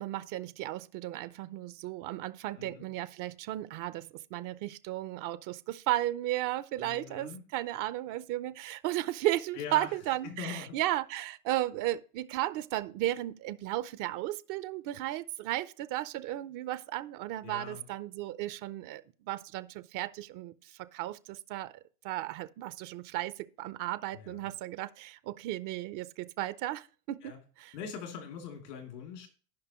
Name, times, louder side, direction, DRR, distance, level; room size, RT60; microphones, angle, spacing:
voice 1, 0.0-21.7 22.0-27.3 27.6-27.7, right 15 dB, 40° right, 0.6 m, -35 dB
voice 2, 6.8-7.4 9.5-9.9 10.2-10.8 17.4-17.9 24.1-24.5 27.2-27.4 27.7-29.3, left 7 dB, 80° left, 3.0 m, -42 dB
14.0 x 5.4 x 3.0 m
hypercardioid pair, 110°, 48 cm